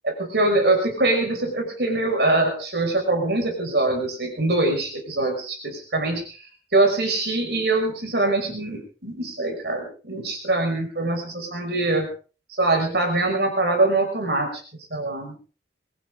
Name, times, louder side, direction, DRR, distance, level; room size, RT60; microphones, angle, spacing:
voice 1, 0.0-6.2 6.7-12.1 12.5-14.5 14.9-15.4, right 2 dB, 70° right, 3 dB, 5.9 m, -23 dB
22.5 x 15.0 x 3.8 m, 0.36 s
head